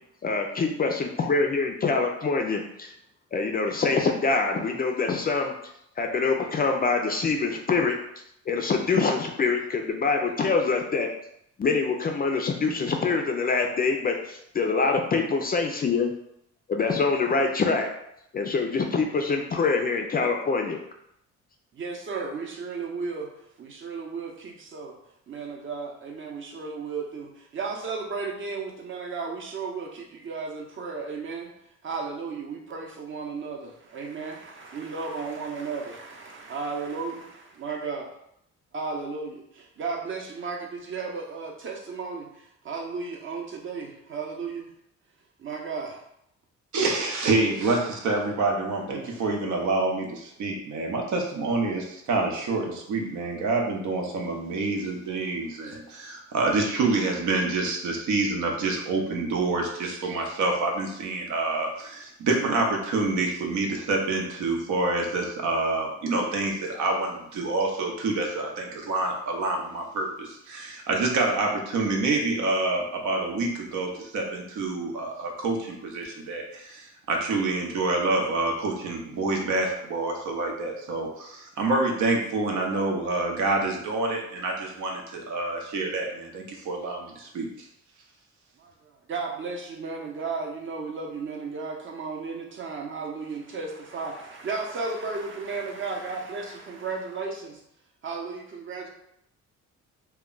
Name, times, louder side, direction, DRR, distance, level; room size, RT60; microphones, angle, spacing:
voice 1, 0.2-2.9 3.3-5.5 6.0-8.0 8.5-11.1 11.6-16.1 16.7-17.9 18.3-20.8, left 4 dB, 30° left, 3 dB, 0.4 m, -25 dB
voice 2, 21.7-23.3 23.6-24.9 25.3-31.5 31.8-38.1 38.7-44.7 45.4-46.0 88.6-97.6 98.0-98.9, right 4 dB, 40° right, 1 dB, 0.7 m, -34 dB
voice 3, 46.7-87.5, right 3 dB, 75° right, 1 dB, 0.7 m, -27 dB
2.3 x 2.2 x 3.7 m, 0.75 s
cardioid pair, 90°, 30 cm